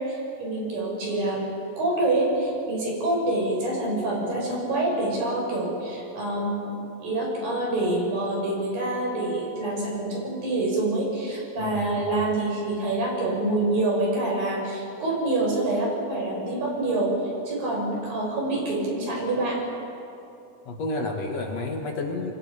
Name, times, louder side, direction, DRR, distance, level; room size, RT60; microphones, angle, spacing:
voice 1, 0.0-1.4 1.8-6.7 7.0-19.6, right 2 dB, 80° right, -3 dB, 7.6 m, -26 dB
voice 2, 11.6-11.9 20.7-22.3, left 2 dB, 55° left, 1 dB, 2.5 m, -30 dB
28.5 x 23.0 x 5.0 m, 2.7 s
omnidirectional pair, 4.0 m